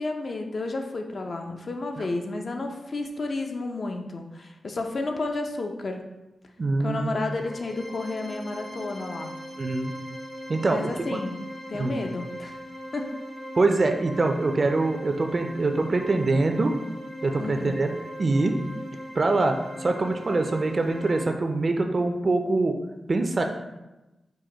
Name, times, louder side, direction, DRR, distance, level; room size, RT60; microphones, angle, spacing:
voice 1, 0.0-6.0 6.8-9.3 10.6-12.6 12.9-13.1 17.4-17.8, left 2 dB, 60° left, 4 dB, 0.5 m, -32 dB
voice 2, 6.6-7.2 9.6-9.9 10.5-10.9 11.7-12.0 13.6-16.7 17.2-18.5 19.2-19.5 19.8-22.7 23.1-23.4, right 3 dB, 50° right, 5 dB, 0.4 m, -24 dB
sound 1, 7.1-21.2, equal, 90° left, 1.3 m, -40 dB
4.8 x 2.2 x 3.8 m, 1.0 s
cardioid pair, 60°, 0 cm